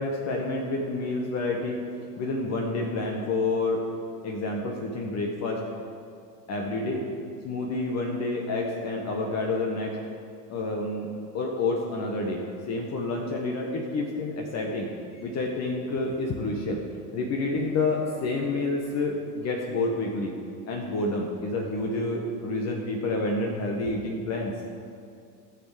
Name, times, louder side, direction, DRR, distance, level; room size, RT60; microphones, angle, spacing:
voice 1, 0.0-1.8 2.2-3.9 4.2-5.7 6.5-7.1 7.4-10.0 10.5-11.1 11.3-16.8 17.1-20.3 20.7-24.6, left 2 dB, 35° left, 0 dB, 1.4 m, -29 dB
15.5 x 6.4 x 5.1 m, 2.4 s
figure-of-eight pair, 75°, 48 cm